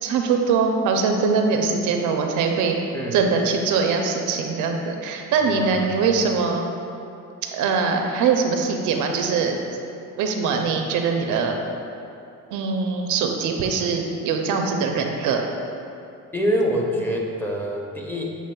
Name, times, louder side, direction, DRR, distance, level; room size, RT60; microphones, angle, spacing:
voice 1, 0.0-2.8 3.1-6.6 7.5-9.6 10.2-11.6 12.5-15.4, right 5 dB, 85° right, 3 dB, 0.5 m, -22 dB
voice 2, 5.4-5.8 16.3-18.4, equal, 5° left, -2 dB, 0.6 m, -25 dB
7.0 x 3.0 x 2.2 m, 2.6 s
cardioid pair, 90°, 30 cm